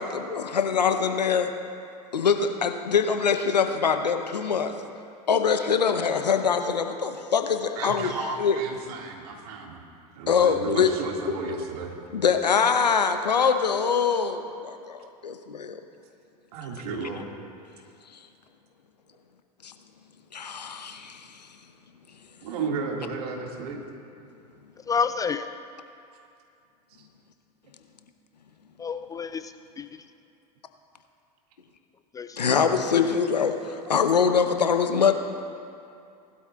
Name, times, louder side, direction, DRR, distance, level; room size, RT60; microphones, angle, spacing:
voice 1, 0.0-1.5 2.1-4.7 5.3-8.1 8.4-8.6 10.3-11.6 12.1-15.8 19.6-19.7 20.3-21.4 32.4-35.1, left 6 dB, 90° left, 7 dB, 0.8 m, -24 dB
voice 2, 7.8-9.8 10.2-11.9 16.5-17.3 22.4-23.8 27.0-27.1, right 4 dB, 65° right, 1 dB, 2.0 m, -33 dB
voice 3, 24.9-25.5 28.8-29.9 32.1-32.4, left 6 dB, 15° left, 10 dB, 0.3 m, -29 dB
19.0 x 12.5 x 2.4 m, 2.5 s
hypercardioid pair, 85°, 21 cm